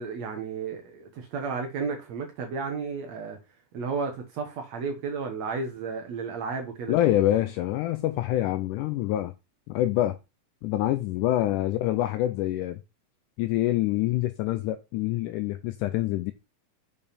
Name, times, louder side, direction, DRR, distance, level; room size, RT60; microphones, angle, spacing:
voice 1, 0.0-3.4 3.7-7.0, right 5 dB, 65° right, 1.8 m, -33 dB
voice 2, 6.9-9.3 9.7-10.2 10.6-12.8 13.4-16.3, left 14 dB, 85° left, 1.8 m, -26 dB
7.0 x 5.4 x 4.1 m
omnidirectional pair, 4.1 m